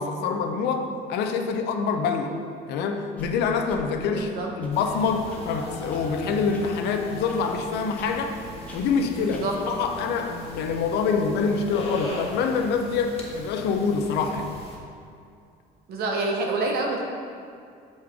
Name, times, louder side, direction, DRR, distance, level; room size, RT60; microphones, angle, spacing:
voice 1, 0.0-2.3 2.7-8.3 8.7-14.5, left 5 dB, 80° left, 5 dB, 0.6 m, -26 dB
sound 1, 3.2-3.3 3.7-3.8 4.1-4.2 4.6-4.7 5.3-5.4 5.9-6.0 6.5-6.6 7.3-7.4 7.9-8.1 8.7-8.8 9.3-9.4, left 1 dB, 10° left, 1.1 m, -46 dB
voice 2, 4.0-4.5 9.2-9.6 15.9-17.0, right 3 dB, 65° right, 0 dB, 0.8 m, -27 dB
Singing, 4.3-12.2, right 1 dB, 25° right, 0.9 m, -46 dB
sound 2, 4.7-14.8, left 1 dB, 35° left, 1.3 m, -40 dB
6.4 x 5.1 x 3.6 m, 2.4 s
cardioid pair, 110°, 17 cm